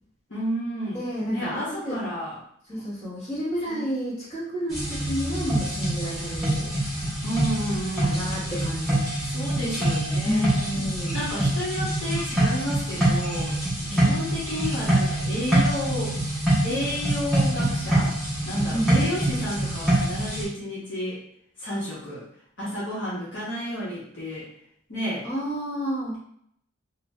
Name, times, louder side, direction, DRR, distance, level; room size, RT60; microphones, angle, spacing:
voice 1, 0.3-1.0 1.3-2.4 2.7-2.8 3.7-4.0 7.2-8.2 9.2-10.8 11.1-13.6 13.9-16.2 16.6-18.1 18.4-21.2 21.6-22.3 22.6-24.5 24.9-25.3, equal, 60° left, -9 dB, 0.8 m, -31 dB
voice 2, 0.9-2.0 2.7-6.7 8.0-9.1 10.2-11.2 13.8-14.1 18.6-19.1 25.2-26.2, equal, 30° left, -9 dB, 1.1 m, -30 dB
sound 1, 4.7-20.4, right 1 dB, ahead, 0.8 m, -25 dB
2.5 x 2.0 x 3.3 m, 0.70 s
head